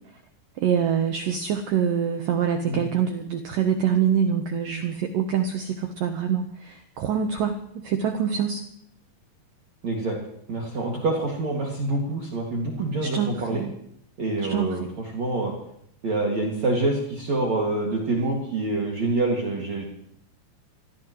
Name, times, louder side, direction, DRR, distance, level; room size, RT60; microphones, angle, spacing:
voice 1, 0.6-7.6 7.8-8.6 13.0-13.7 14.4-14.9, right 8 dB, 75° right, 5 dB, 2.0 m, -25 dB
voice 2, 9.8-10.2 10.5-13.6 14.2-15.5 16.0-19.8, right 2 dB, 45° right, -2 dB, 2.9 m, -26 dB
25.5 x 18.0 x 3.2 m, 0.71 s
omnidirectional pair, 5.3 m